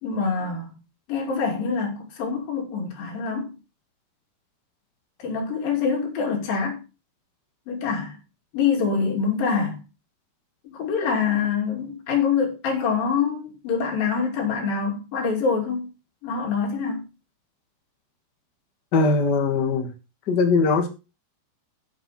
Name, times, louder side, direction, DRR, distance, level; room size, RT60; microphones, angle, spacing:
voice 1, 0.0-0.7 1.1-3.6 5.2-6.8 7.7-8.2 8.5-9.8 10.6-15.9 16.2-17.0, left 5 dB, 60° left, 4.3 m, -25 dB
voice 2, 18.9-19.9 20.3-20.9, left 4 dB, 80° left, 0.9 m, -20 dB
12.0 x 7.1 x 4.2 m
omnidirectional pair, 4.7 m